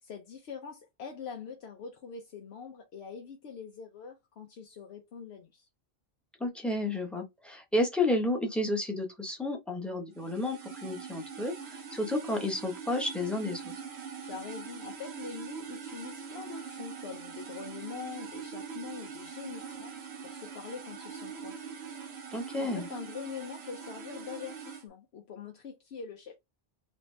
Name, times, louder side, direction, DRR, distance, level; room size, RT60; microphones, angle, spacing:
voice 1, 0.0-5.7 14.2-19.9 20.2-21.7 22.6-26.4, left 6 dB, 80° left, 0.9 m, -44 dB
voice 2, 6.4-13.7 22.3-22.9, left 2 dB, ahead, 0.8 m, -31 dB
sound 1, 10.1-24.8, right 6 dB, 90° right, 1.1 m, -43 dB
3.2 x 2.7 x 3.2 m
omnidirectional pair, 1.1 m